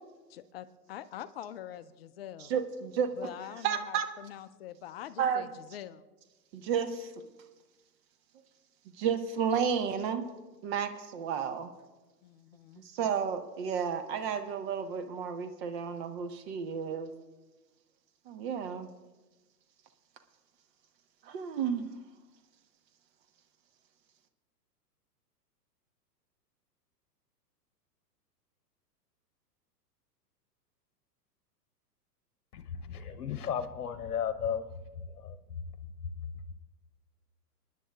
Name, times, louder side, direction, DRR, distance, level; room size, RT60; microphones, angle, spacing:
voice 1, 0.3-2.5 3.2-6.0 12.2-12.8, left 11 dB, 40° left, 0.5 m, -44 dB
voice 2, 2.5-3.1 3.6-4.1 5.2-5.5 6.5-7.1 9.0-10.3 10.6-11.7 12.9-17.1 18.3-18.9 21.2-21.9, right 7 dB, 35° right, 1.1 m, -32 dB
voice 3, 32.5-34.7 35.0-35.4, left 8 dB, 65° left, 1.0 m, -34 dB
27.0 x 10.0 x 2.4 m
figure-of-eight pair, 105°, 49 cm